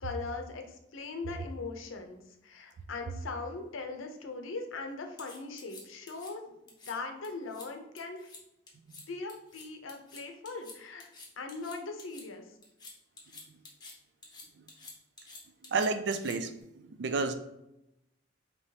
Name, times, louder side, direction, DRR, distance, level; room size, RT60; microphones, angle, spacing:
voice 1, 0.0-8.3 9.1-11.1 11.4-12.4, left 3 dB, 85° left, 4 dB, 0.6 m, -40 dB
sound 1, 5.2-6.3 6.7-6.9 7.2-7.7 8.0-8.4 8.7-9.0 9.3-12.2 12.6-13.9 14.2-16.6, left 3 dB, 20° left, 0.7 m, -50 dB
voice 2, 15.7-16.5 17.0-17.3, right 4 dB, 60° right, 10 dB, 0.3 m, -29 dB
4.5 x 2.9 x 2.8 m, 0.88 s
head